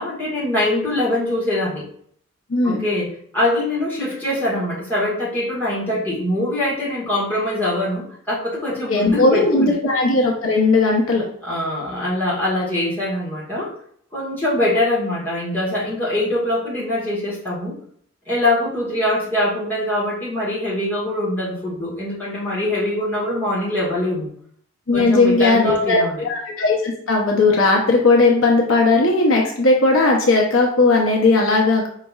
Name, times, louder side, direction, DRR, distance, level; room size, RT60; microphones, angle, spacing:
voice 1, 0.0-1.9 2.6-9.7 11.4-13.7 14.1-17.8 18.3-24.3 24.9-26.2, left 1 dB, 10° left, -8 dB, 1.6 m, -23 dB
voice 2, 2.5-2.8 8.9-11.2 24.9-31.9, left 3 dB, 70° left, 0 dB, 0.9 m, -17 dB
5.3 x 4.1 x 2.4 m, 0.63 s
head